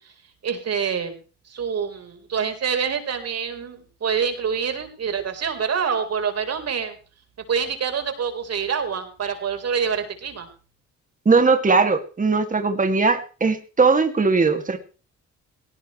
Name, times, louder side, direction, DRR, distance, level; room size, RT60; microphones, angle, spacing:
voice 1, 0.4-1.1 1.5-6.9 7.5-10.5, right 6 dB, 55° right, 6 dB, 4.3 m, -26 dB
voice 2, 11.3-14.8, right 4 dB, 25° right, 6 dB, 2.4 m, -19 dB
19.0 x 18.0 x 3.2 m, 0.37 s
cardioid pair, 90°, 30 cm